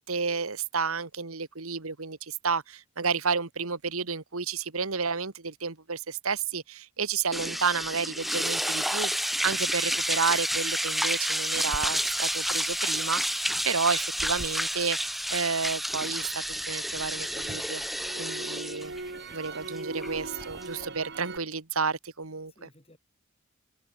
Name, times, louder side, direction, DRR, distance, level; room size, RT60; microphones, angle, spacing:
voice 1, 0.0-17.8 18.2-18.9 19.3-22.7, right 5 dB, 85° right, 1.9 m, -31 dB
sound 1, 7.3-20.8, equal, ahead, 0.5 m, -30 dB
Crackle, 11.7-15.8 16.2-21.4, right 2 dB, 55° right, 2.9 m, -42 dB
voice 2, 22.5-23.0, left 1 dB, 30° left, 6.9 m, -58 dB
head